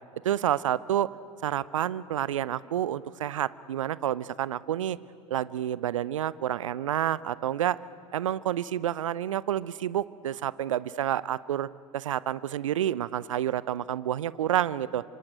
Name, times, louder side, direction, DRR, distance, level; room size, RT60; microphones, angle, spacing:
voice 1, 0.2-1.1 1.4-5.0 5.3-7.8 8.1-15.0, right 11 dB, 70° right, 19 dB, 0.6 m, -29 dB
26.0 x 25.5 x 9.0 m, 2.4 s
figure-of-eight pair, 75°, 17 cm